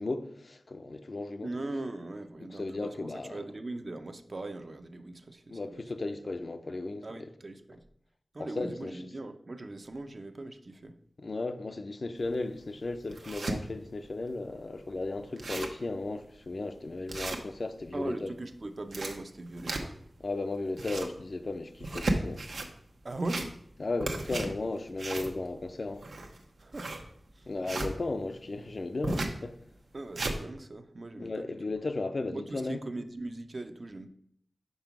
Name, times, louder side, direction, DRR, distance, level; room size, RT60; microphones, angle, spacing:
voice 1, 0.0-1.5 2.4-3.4 5.5-7.3 8.4-8.9 11.2-18.3 20.2-22.5 23.8-26.1 27.5-29.6 31.2-32.8, left 2 dB, 55° left, 0.5 m, -35 dB
voice 2, 1.4-5.8 7.0-7.8 8.3-11.0 17.9-20.0 23.0-23.5 26.6-26.9 27.3-27.5 29.9-31.7 32.3-34.1, right 2 dB, 50° right, 0.6 m, -40 dB
sound 1, 12.2-12.3 12.8-13.6 14.1-14.2 14.5-14.6 15.0-15.1 15.3-15.9 16.3-16.4 17.1-17.9 18.7-20.1 20.6-21.2 21.7-22.7 23.1-23.7 24.0-27.9 29.0-29.4 29.8-30.4, right 2 dB, 85° right, 0.9 m, -34 dB
5.5 x 5.0 x 5.8 m
wide cardioid pair, 90°, 0 cm